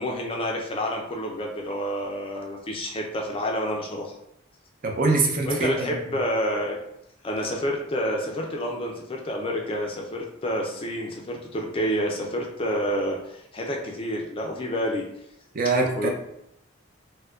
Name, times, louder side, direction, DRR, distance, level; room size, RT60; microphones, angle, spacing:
voice 1, 0.0-4.1 5.5-6.8 7.2-15.0 16.0-16.1, equal, 25° left, 1 dB, 0.4 m, -29 dB
voice 2, 4.8-6.0 15.5-16.1, right 3 dB, 45° right, 1 dB, 0.5 m, -23 dB
4.3 x 2.1 x 2.4 m, 0.79 s
head